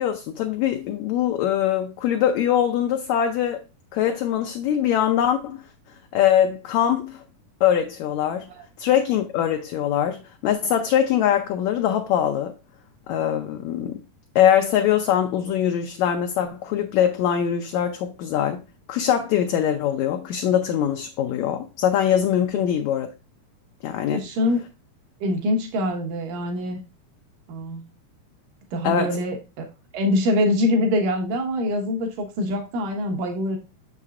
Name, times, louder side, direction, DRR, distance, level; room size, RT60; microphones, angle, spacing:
voice 1, 0.0-3.6 3.9-5.6 6.1-7.2 7.6-8.5 8.8-12.5 13.1-14.0 14.3-23.1 23.8-24.2 28.8-29.2, left 10 dB, 80° left, 1.6 m, -22 dB
voice 2, 24.1-24.6 25.2-26.8 27.5-27.8 28.7-29.4 29.9-33.6, left 1 dB, 75° right, 2.8 m, -24 dB
6.7 x 6.4 x 2.4 m
omnidirectional pair, 3.9 m